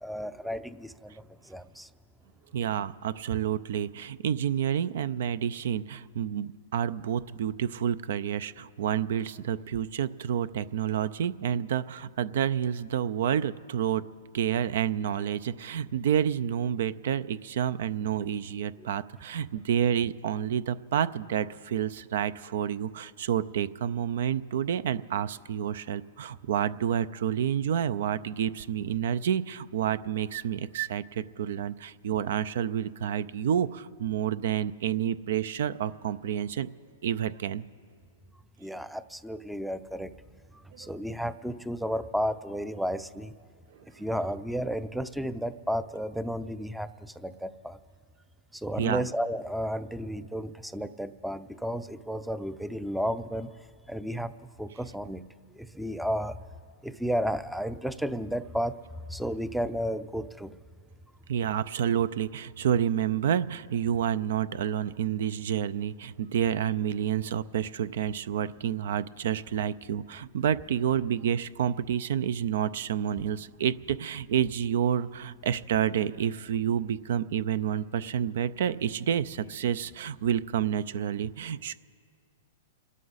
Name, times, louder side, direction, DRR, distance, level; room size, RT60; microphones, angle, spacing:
voice 1, 0.0-1.1 1.4-1.9 38.6-40.1 40.5-43.3 43.9-47.8 48.5-53.5 53.9-54.3 54.6-55.3 55.6-56.4 56.8-58.8 59.1-60.6, equal, ahead, 14 dB, 0.5 m, -32 dB
voice 2, 2.5-14.0 14.3-36.7 37.0-37.6 40.7-40.9 48.8-49.0 61.3-81.7, right 9 dB, 65° right, 17 dB, 0.5 m, -29 dB
28.0 x 12.5 x 4.1 m, 2.1 s
hypercardioid pair, 140°, 0 cm